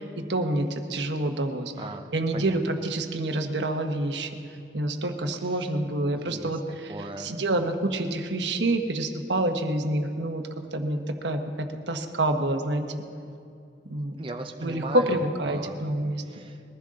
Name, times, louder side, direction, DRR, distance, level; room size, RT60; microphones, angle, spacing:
voice 1, 0.0-1.7 2.1-4.3 4.7-10.5 10.7-12.9 13.9-14.2 14.6-16.2, right 1 dB, 85° right, 5 dB, 1.2 m, -27 dB
voice 2, 1.8-2.6 5.4-5.7 6.1-6.6 6.9-7.4 14.2-15.8 16.2-16.6, right 2 dB, 30° right, 5 dB, 0.6 m, -39 dB
21.0 x 15.0 x 3.8 m, 2.5 s
head